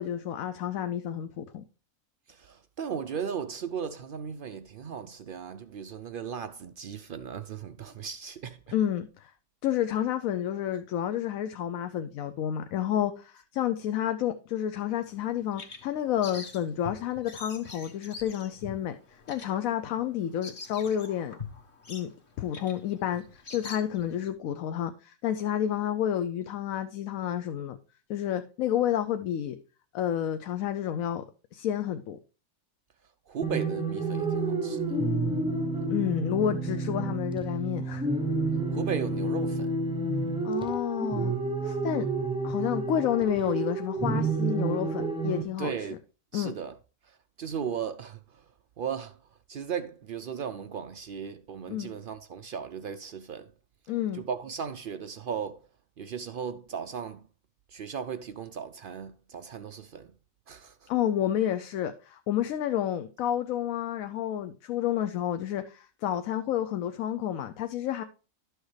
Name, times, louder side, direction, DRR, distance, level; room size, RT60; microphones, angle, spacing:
voice 1, 0.0-1.6 8.7-9.3 9.6-21.4 21.9-22.1 22.4-27.8 28.1-29.6 29.9-31.2 31.5-32.2 35.9-38.1 40.4-41.3 41.6-42.1 42.4-45.9 46.3-46.5 51.7-51.9 53.9-54.2 60.9-68.0, left 10 dB, 75° left, 1.0 m, -30 dB
voice 2, 2.3-8.6 33.3-34.8 38.7-39.7 45.6-46.0 46.3-46.7 47.4-48.4 48.8-49.1 49.5-53.5 54.1-55.6 56.0-57.2 57.7-60.1 60.5-60.9, right 7 dB, 75° right, 0.5 m, -36 dB
Bird vocalization bird call bird song, 15.1-24.3, left 4 dB, 40° left, 1.2 m, -45 dB
sound 1, 33.4-45.4, right 3 dB, 5° right, 0.4 m, -30 dB
11.5 x 6.4 x 3.2 m
omnidirectional pair, 1.5 m